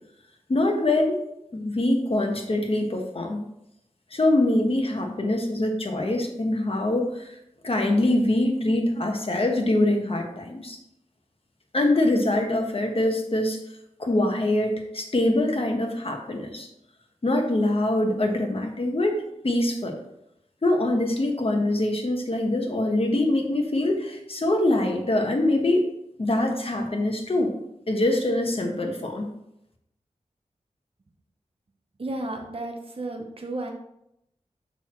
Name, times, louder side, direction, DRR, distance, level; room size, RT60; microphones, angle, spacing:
voice 1, 0.5-1.2 1.5-3.4 4.1-7.3 7.6-10.8 11.7-13.6 14.0-16.7 17.2-20.0 20.6-25.9 26.2-27.5 27.9-29.3, left 1 dB, 45° left, 2 dB, 1.3 m, -24 dB
voice 2, 32.0-33.7, right 2 dB, 45° right, 2 dB, 0.9 m, -33 dB
6.7 x 6.1 x 3.1 m, 0.79 s
wide cardioid pair, 85°, 13 cm